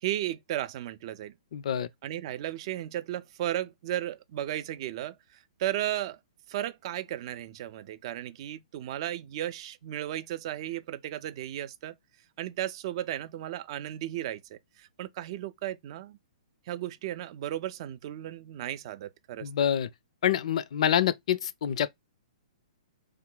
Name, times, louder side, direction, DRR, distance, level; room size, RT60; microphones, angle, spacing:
voice 1, 0.0-1.3 2.0-6.2 6.5-11.9 12.4-16.2 16.7-19.5, right 12 dB, 45° right, 0.4 m, -35 dB
voice 2, 1.5-1.9 19.4-19.9 20.2-21.9, left 9 dB, 55° left, 0.4 m, -26 dB
3.1 x 2.2 x 3.7 m
figure-of-eight pair, 125°, 4 cm